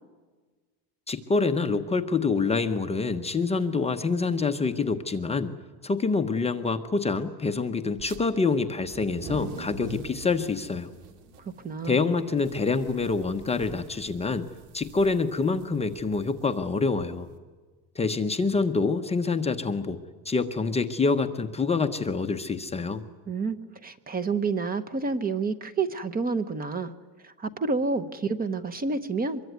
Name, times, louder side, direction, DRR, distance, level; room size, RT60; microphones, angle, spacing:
voice 1, 1.1-5.5 5.8-10.9 11.8-14.5 14.7-17.3 18.0-23.0, left 4 dB, 15° left, 6 dB, 0.8 m, -26 dB
sound 1, 7.9-8.2 8.8-17.3, right 3 dB, 75° right, 2.8 m, -44 dB
voice 2, 11.4-12.0 23.3-26.9 27.2-29.4, right 4 dB, 20° right, 12 dB, 0.9 m, -29 dB
24.5 x 22.5 x 9.4 m, 1.4 s
cardioid pair, 165°, 41 cm